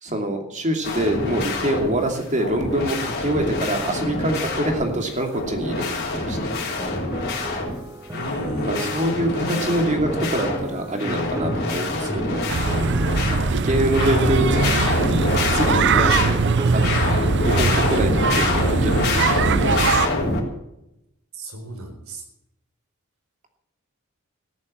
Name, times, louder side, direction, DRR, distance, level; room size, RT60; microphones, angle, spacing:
voice 1, 0.0-5.8 6.1-6.4 8.6-12.5 13.4-14.8 15.1-17.0 17.4-19.7, right 1 dB, 35° right, 4 dB, 2.7 m, -25 dB
sound 1, 0.8-2.0 2.4-5.0 5.3-7.8 8.0-10.7 11.0-13.6 13.9-16.4 16.7-20.4, left 2 dB, 45° left, 3.9 m, -26 dB
sound 2, 6.8-17.2, right 1 dB, 15° right, 0.6 m, -34 dB
voice 2, 8.1-8.9 13.4-13.6 21.3-22.2, right 2 dB, 70° right, 5 dB, 4.2 m, -34 dB
sound 3, 12.5-20.1, right 4 dB, 55° right, 0.7 m, -21 dB
14.5 x 11.0 x 7.6 m, 0.83 s
head